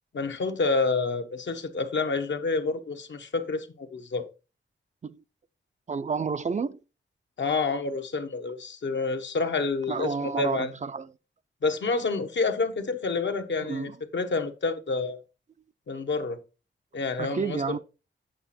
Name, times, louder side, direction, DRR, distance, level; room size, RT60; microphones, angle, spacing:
voice 1, 0.1-4.2 7.4-10.7 11.6-15.2 15.9-16.4 16.9-17.8, left 4 dB, 65° left, 1.0 m, -28 dB
voice 2, 5.9-6.8 9.9-11.1 13.6-14.0 17.2-17.8, right 5 dB, 35° right, 0.4 m, -30 dB
9.0 x 5.0 x 4.2 m
wide cardioid pair, 140°, 20 cm